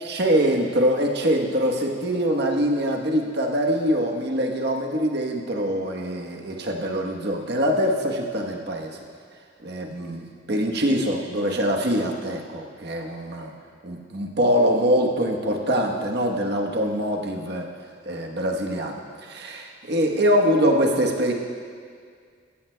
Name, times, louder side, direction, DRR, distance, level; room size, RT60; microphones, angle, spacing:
voice 1, 0.0-9.0 9.6-13.5 13.8-17.6 18.0-21.3, equal, 55° right, 1 dB, 1.1 m, -24 dB
15.5 x 14.0 x 2.2 m, 2.1 s
head